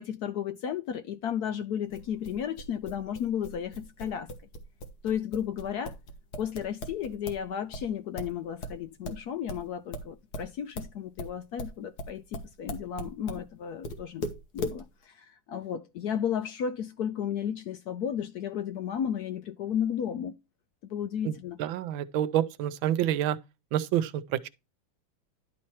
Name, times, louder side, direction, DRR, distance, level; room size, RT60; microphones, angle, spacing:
voice 1, 0.0-4.3 5.0-5.9 6.4-14.3 14.5-20.4 20.8-21.6, left 9 dB, 70° left, 0.9 m, -33 dB
sound 1, 1.9-7.5 7.7-13.5 13.8-14.8, left 1 dB, 55° left, 1.9 m, -38 dB
voice 2, 21.6-23.4 23.7-24.5, right 11 dB, 85° right, 1.5 m, -28 dB
11.5 x 4.3 x 4.5 m
omnidirectional pair, 2.1 m